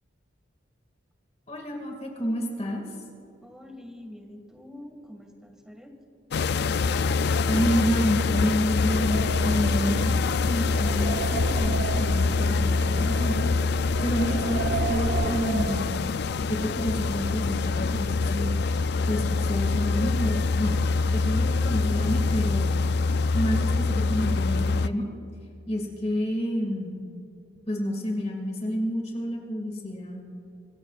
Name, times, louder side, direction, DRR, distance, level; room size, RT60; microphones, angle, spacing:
voice 1, 1.5-2.8 7.5-13.5 14.0-16.0 16.4-18.5 19.1-22.8 23.3-25.1 25.7-27.0 27.7-30.2, equal, 35° left, 1 dB, 2.1 m, -29 dB
voice 2, 3.4-6.0, left 1 dB, 5° right, 3 dB, 1.9 m, -45 dB
sound 1, 6.3-24.9, left 4 dB, 60° left, 0.4 m, -25 dB
sound 2, 8.7-16.3, right 7 dB, 55° right, 0.3 m, -35 dB
26.5 x 16.0 x 2.4 m, 2.6 s
head